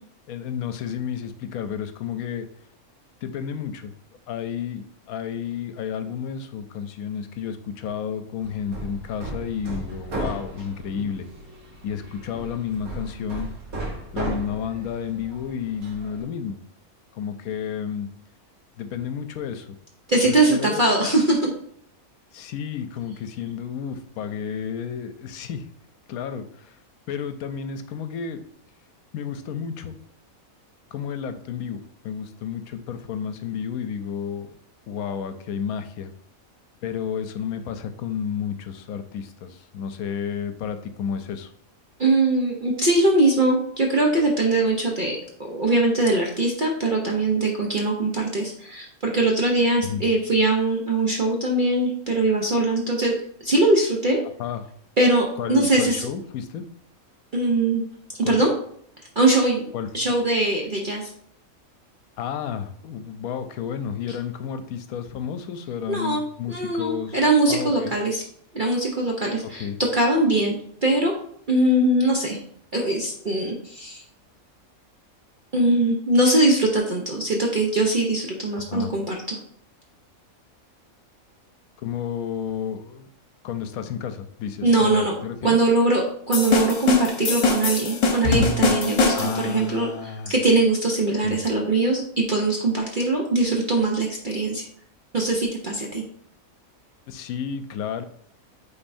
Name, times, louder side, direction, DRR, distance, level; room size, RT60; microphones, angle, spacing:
voice 1, 0.3-2.5 3.2-3.9 4.3-11.3 11.8-13.5 14.1-16.6 17.1-18.1 18.8-19.8 20.2-20.9 22.3-25.7 26.1-26.8 27.1-28.4 29.1-30.0 30.9-34.5 34.9-36.1 36.8-41.5 49.8-50.0 54.4-54.7 55.4-56.7 58.2-58.4 59.7-59.9 62.2-67.2 67.5-67.9 69.5-69.8 78.6-78.9 81.8-83.1 83.4-85.6 89.1-90.3 91.2-91.4 97.1-98.0, left 7 dB, 80° left, 9 dB, 1.1 m, -31 dB
Hammer, 8.4-16.2, right 2 dB, 75° right, 1.9 m, -35 dB
voice 2, 20.1-21.5 42.0-45.2 45.5-53.2 53.4-54.2 55.0-56.1 57.3-57.8 58.2-58.5 59.2-61.1 65.9-66.2 66.5-68.2 68.5-69.6 69.9-70.6 70.8-71.1 71.5-72.4 72.7-74.0 75.5-79.4 84.6-85.1 85.4-94.7 95.1-96.0, right 2 dB, 45° right, -1 dB, 0.8 m, -21 dB
sound 1, 86.3-89.5, left 3 dB, 60° left, 1.2 m, -22 dB
8.8 x 4.1 x 2.6 m, 0.65 s
omnidirectional pair, 1.5 m